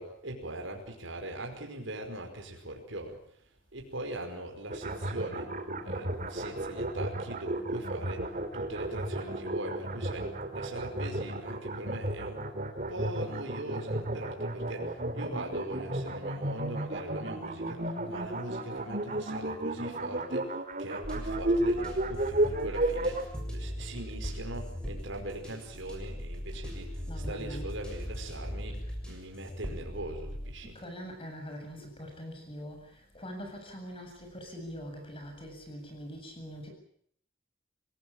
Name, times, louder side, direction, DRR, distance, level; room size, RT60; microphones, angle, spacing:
voice 1, 0.0-5.5 5.8-12.4 12.9-30.8, right 1 dB, 70° right, 3 dB, 5.1 m, -41 dB
sound 1, 4.7-23.2, right 1 dB, 40° right, 2.9 m, -33 dB
sound 2, 21.0-30.5, equal, 5° left, 7.2 m, -39 dB
voice 2, 27.1-27.7 30.6-32.8 33.1-36.7, equal, 30° left, 4 dB, 7.9 m, -43 dB
26.5 x 18.0 x 8.9 m, 0.65 s
head